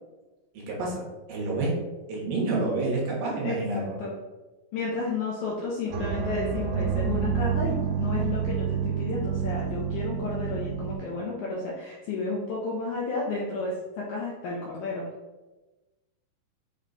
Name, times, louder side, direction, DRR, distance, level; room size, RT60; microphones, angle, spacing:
voice 1, 0.7-1.0 1.3-1.7 2.1-4.0, right 3 dB, 75° right, -3 dB, 2.5 m, -28 dB
voice 2, 3.4-4.1 4.7-15.1, left 3 dB, 85° left, -4 dB, 1.7 m, -32 dB
sound 1, 5.9-11.0, right 7 dB, 90° right, 2.5 m, -28 dB
6.0 x 2.2 x 3.8 m, 1.1 s
omnidirectional pair, 4.2 m